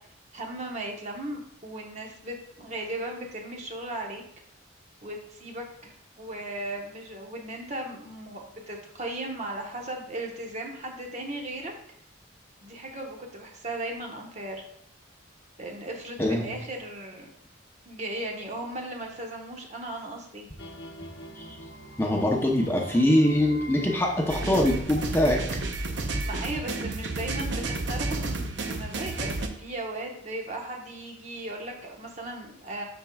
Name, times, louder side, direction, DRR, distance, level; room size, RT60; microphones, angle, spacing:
voice 1, 0.3-4.2 5.0-11.7 12.6-14.6 15.6-17.3 17.9-20.5 26.2-32.8, right 1 dB, 35° right, 1 dB, 1.1 m, -36 dB
voice 2, 16.2-16.5 21.4-21.5 22.0-25.4, left 1 dB, 10° left, 0 dB, 0.8 m, -23 dB
sound 1, 20.6-26.2, equal, 60° left, 1.1 m, -44 dB
sound 2, 24.3-29.5, right 2 dB, 65° right, 0.7 m, -31 dB
12.0 x 4.6 x 2.3 m, 0.71 s
head